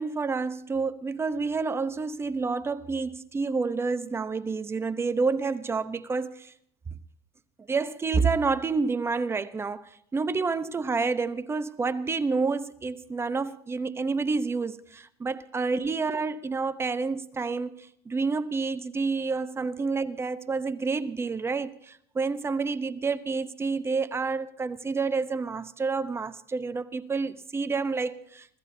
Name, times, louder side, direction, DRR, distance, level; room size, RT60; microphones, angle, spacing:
voice 1, 0.0-6.5 7.7-28.6, right 4 dB, 20° right, 0.9 m, -29 dB
26.0 x 16.0 x 2.8 m
supercardioid pair, 115°, 13 cm